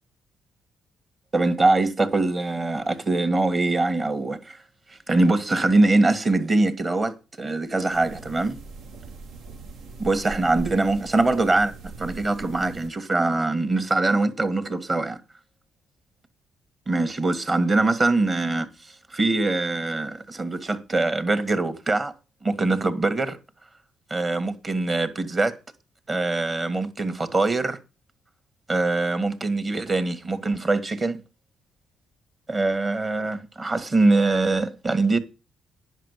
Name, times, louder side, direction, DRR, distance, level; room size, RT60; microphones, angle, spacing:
voice 1, 1.3-4.6 4.9-8.6 10.0-11.7 12.0-15.2 16.9-22.1 22.4-23.4 24.1-25.6 26.1-27.8 28.7-31.2 32.5-35.2, right 2 dB, 30° right, 1.9 m, -23 dB
sound 1, 7.9-12.9, right 3 dB, 80° right, 1.5 m, -41 dB
10.0 x 5.8 x 8.2 m
cardioid pair, 90°, 0 cm